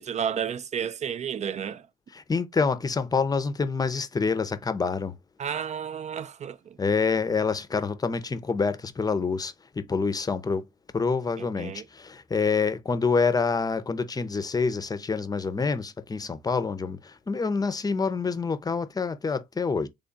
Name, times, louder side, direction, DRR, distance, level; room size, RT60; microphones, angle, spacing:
voice 1, 0.0-1.9 5.4-6.8 11.4-11.8, right 8 dB, 45° right, 0.4 m, -32 dB
voice 2, 2.1-5.1 6.8-10.7 10.9-19.9, left 4 dB, 25° left, 0.6 m, -27 dB
3.4 x 2.3 x 3.8 m
supercardioid pair, 80°, 17 cm